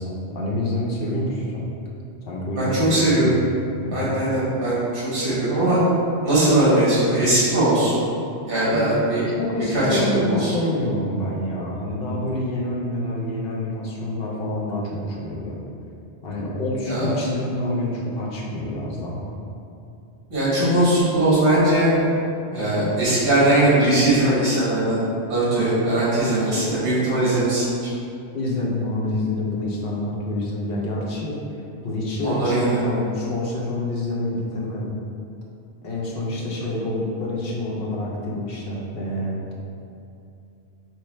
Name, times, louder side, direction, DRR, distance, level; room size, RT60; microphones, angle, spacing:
voice 1, 0.0-1.7 2.3-3.5 3.8-4.1 8.6-8.9 9.4-15.6 16.2-19.3 28.3-31.4 31.8-35.0 35.8-39.3, left 1 dB, 60° left, -3 dB, 1.0 m, -27 dB
voice 2, 2.6-3.4 3.9-5.8 6.2-8.0 8.5-9.2 9.7-10.5 16.8-17.1 20.3-21.9 22.5-25.0 25.3-27.9 32.2-32.8, right 1 dB, 55° right, -10 dB, 1.5 m, -20 dB
4.7 x 3.0 x 3.2 m, 2.6 s
omnidirectional pair, 1.1 m